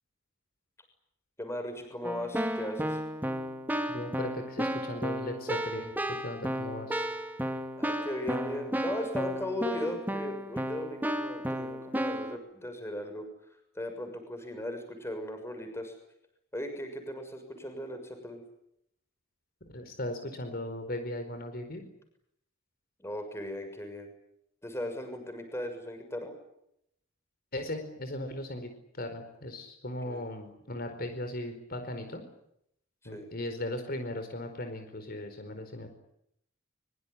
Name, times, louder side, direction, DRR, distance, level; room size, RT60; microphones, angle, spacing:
voice 1, 1.4-3.0 7.8-13.3 13.7-15.9 16.5-18.4 23.0-24.1 24.6-26.3 30.0-30.2 33.1-33.3, left 1 dB, 15° left, 6 dB, 6.7 m, -37 dB
Keyboard (musical), 2.0-12.4, equal, 10° right, 2.4 m, -33 dB
voice 2, 3.9-7.0 19.7-21.8 27.5-32.2 33.0-35.9, left 1 dB, 50° left, 7 dB, 4.7 m, -37 dB
24.5 x 23.5 x 9.9 m, 0.77 s
head